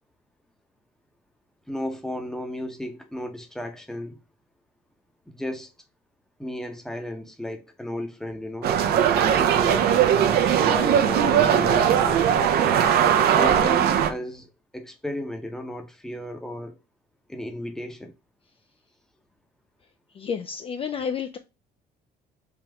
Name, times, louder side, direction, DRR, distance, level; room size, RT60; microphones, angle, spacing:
voice 1, 1.7-4.2 5.3-5.7 6.4-8.8 9.3-12.2 13.3-14.5 14.7-16.7 17.3-18.1, left 1 dB, 5° left, 0.7 m, -34 dB
sound 1, 8.6-14.1, right 9 dB, 70° right, 0.6 m, -19 dB
voice 2, 20.1-21.4, left 7 dB, 35° left, 0.3 m, -30 dB
3.5 x 2.9 x 3.4 m
cardioid pair, 110°, 17 cm